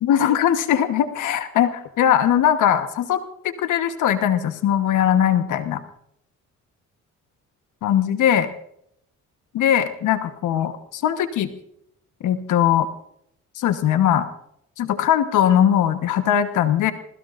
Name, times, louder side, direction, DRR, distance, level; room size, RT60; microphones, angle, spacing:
voice 1, 0.0-5.8 7.8-8.5 9.5-11.5 12.2-12.9 13.6-14.3 14.8-16.9, left 10 dB, 80° left, 9 dB, 1.3 m, -20 dB
27.0 x 20.5 x 2.6 m, 0.75 s
cardioid pair, 90°, 30 cm